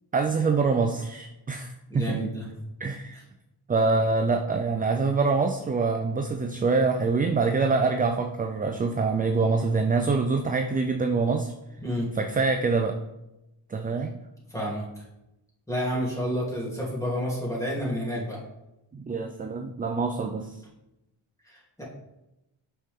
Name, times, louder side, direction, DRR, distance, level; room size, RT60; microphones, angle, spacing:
voice 1, 0.1-2.2 2.8-3.2 3.7-11.5 12.2-13.0 13.7-14.2 18.9-20.5, right 4 dB, 20° right, 5 dB, 0.4 m, -25 dB
voice 2, 1.9-2.5 11.8-12.1 14.5-15.0 15.7-18.4 21.5-21.8, equal, 5° left, -5 dB, 2.7 m, -30 dB
8.3 x 5.8 x 3.6 m, 0.93 s
wide cardioid pair, 130°, 47 cm